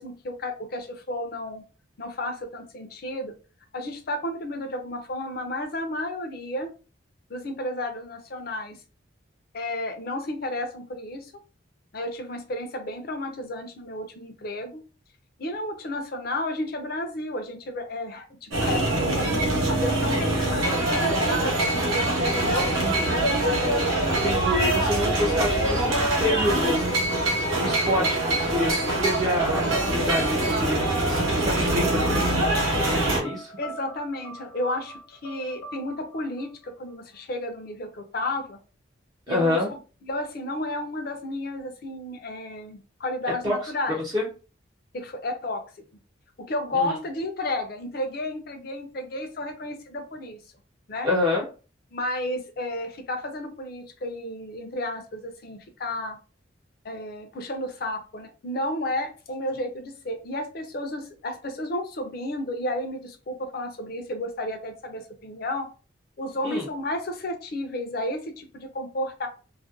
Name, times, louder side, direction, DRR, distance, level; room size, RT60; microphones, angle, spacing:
voice 1, 0.0-1.6 2.0-3.3 3.7-6.7 7.3-8.8 9.5-11.3 11.9-14.8 15.4-21.8 22.3-22.7 33.6-38.6 39.3-44.0 44.9-45.6 46.5-50.4 50.9-51.1 51.9-56.2 56.8-65.7 66.2-69.3, left 1 dB, 45° left, 5 dB, 0.5 m, -32 dB
sound 1, 18.5-33.2, right 1 dB, 80° right, 0.8 m, -24 dB
voice 2, 22.8-23.2 24.1-27.2 27.5-33.5 39.3-39.7 43.4-44.3 46.7-47.0 51.0-51.4 66.4-66.7, left 1 dB, 20° right, -3 dB, 0.4 m, -28 dB
sound 2, 26.5-37.2, equal, 75° left, 0.7 m, -42 dB
2.4 x 2.1 x 2.5 m, 0.35 s
head